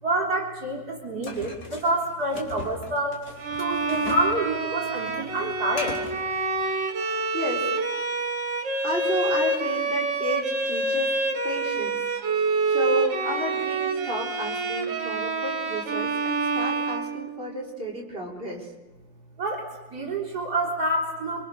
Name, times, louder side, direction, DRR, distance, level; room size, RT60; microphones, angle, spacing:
voice 1, 0.0-3.2 3.6-6.0 19.4-21.4, right 1 dB, 55° right, -1 dB, 4.3 m, -27 dB
sound 1, 1.2-4.4 4.6-6.2, left 2 dB, 55° left, 3.6 m, -39 dB
Bowed string instrument, 3.4-17.7, right 3 dB, 80° right, 3.0 m, -27 dB
voice 2, 7.3-7.7 8.8-11.1 11.4-12.0 12.3-18.7, equal, 30° right, -1 dB, 5.3 m, -32 dB
27.0 x 24.5 x 6.7 m, 1.1 s
omnidirectional pair, 2.0 m